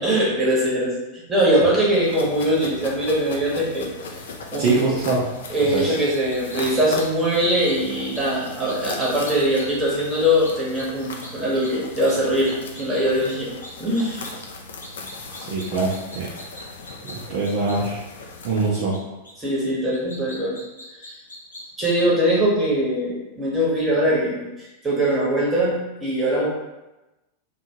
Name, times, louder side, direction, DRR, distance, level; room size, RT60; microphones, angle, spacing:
voice 1, 0.0-3.9 4.5-4.8 5.5-13.5 13.8-14.3 19.4-20.6 20.9-21.1 21.8-26.4, equal, 15° right, -6 dB, 1.0 m, -22 dB
sound 1, 2.0-18.7, left 3 dB, 65° left, 0.3 m, -38 dB
voice 2, 4.6-5.2 5.7-5.9 15.5-16.3 17.0-18.0 18.4-19.0, right 3 dB, 50° right, -5 dB, 0.5 m, -23 dB
sound 2, 6.1-7.0 7.4-7.8 8.1-8.2 8.6-9.6 10.4-10.8 11.2-11.3 11.6-11.7 12.0-12.1 12.4-13.0 13.3-13.4 13.6-14.3 14.8-17.1 17.4-17.7 18.9-19.0 19.2-19.3 19.9-22.0, left 1 dB, 80° left, 0.8 m, -40 dB
2.7 x 2.2 x 2.8 m, 1.0 s
figure-of-eight pair, 90°, 0 cm